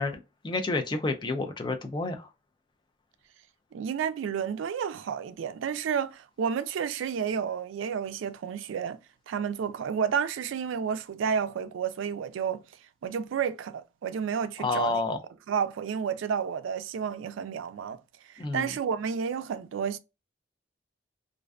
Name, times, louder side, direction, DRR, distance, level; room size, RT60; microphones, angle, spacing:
voice 1, 0.0-2.3 14.6-15.2 18.4-18.8, left 3 dB, 25° left, 0.3 m, -30 dB
voice 2, 3.7-9.0 9.3-12.6 13.0-15.1 15.5-18.0 18.3-20.0, right 7 dB, 85° right, 0.3 m, -31 dB
2.4 x 2.3 x 2.2 m
head